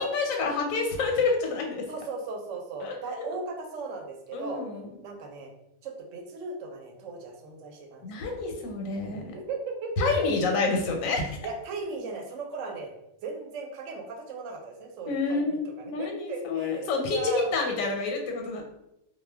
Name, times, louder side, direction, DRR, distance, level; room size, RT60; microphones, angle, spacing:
voice 1, 0.0-1.8 2.8-3.0 4.3-4.9 8.0-9.3 10.0-11.4 15.1-18.6, left 3 dB, 85° left, 2 dB, 1.0 m, -28 dB
voice 2, 1.9-4.6 5.0-5.5 5.8-8.6 9.3-10.6 11.4-12.9 13.2-17.5, right 4 dB, 75° right, 2 dB, 0.9 m, -37 dB
2.2 x 2.1 x 3.3 m, 0.85 s
omnidirectional pair, 1.4 m